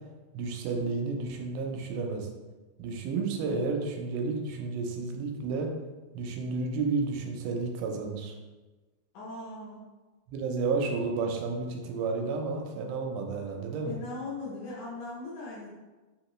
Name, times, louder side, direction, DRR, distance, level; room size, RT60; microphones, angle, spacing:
voice 1, 0.3-2.3 2.8-5.7 6.1-8.4 10.3-14.0, right 4 dB, 85° right, 2 dB, 2.4 m, -31 dB
voice 2, 9.1-9.8 10.8-10.9 13.8-15.7, left 2 dB, 70° left, -7 dB, 1.9 m, -39 dB
5.3 x 2.9 x 3.1 m, 1.2 s
omnidirectional pair, 4.3 m